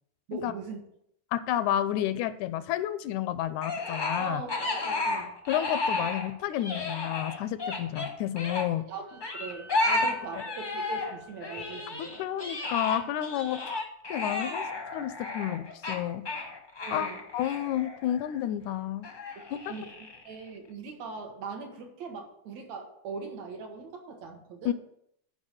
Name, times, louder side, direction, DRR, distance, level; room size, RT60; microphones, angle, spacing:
voice 1, 0.3-0.8 4.2-5.3 8.9-12.1 16.8-17.2 19.7-19.9 20.3-24.7, right 4 dB, 65° right, 2 dB, 2.6 m, -40 dB
voice 2, 1.3-4.4 5.5-8.8 12.0-13.6 14.1-14.7 14.9-16.3 16.9-19.1 24.7-24.8, left 12 dB, 85° left, 13 dB, 2.0 m, -30 dB
sound 1, 3.6-6.3 6.5-8.7 9.2-11.1 11.4-18.4 19.0-20.3, left 2 dB, 35° left, 0.7 m, -32 dB
Wind instrument woodwind instrument, 9.0-13.7, right 1 dB, 35° right, 0.9 m, -53 dB
9.7 x 5.2 x 6.5 m, 0.72 s
omnidirectional pair, 3.4 m